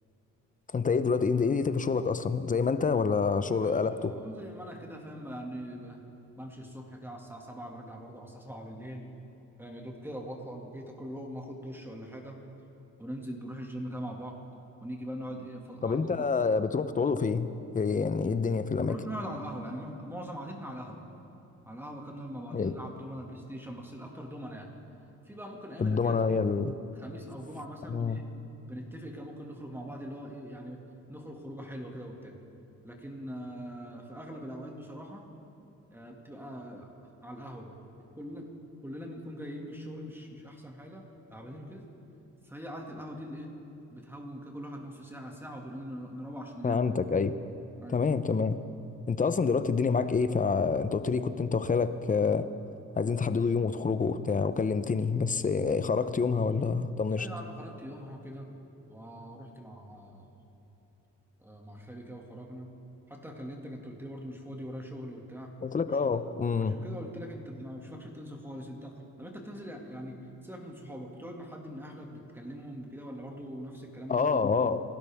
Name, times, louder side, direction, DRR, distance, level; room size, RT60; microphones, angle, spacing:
voice 1, 0.7-4.1 15.8-17.5 17.7-19.0 22.5-22.7 25.8-26.8 27.9-28.2 46.6-47.4 47.9-48.6 49.1-52.5 53.0-57.3 65.6-66.8 74.1-74.8, left 5 dB, 25° left, 12 dB, 0.8 m, -27 dB
voice 2, 3.6-6.0 6.4-9.1 9.6-12.4 13.0-14.4 14.8-16.2 18.8-21.0 21.7-24.7 25.3-26.2 26.9-28.3 28.7-30.8 31.1-32.4 32.8-35.3 35.9-37.8 38.2-38.5 38.8-41.9 42.4-43.5 43.9-46.8 47.8-48.0 57.2-58.5 58.9-60.3 61.4-62.7 63.1-65.5 66.0-66.3 66.6-74.7, equal, 5° right, 0 dB, 2.2 m, -42 dB
29.0 x 12.5 x 3.6 m, 2.9 s
cardioid pair, 90°, 30 cm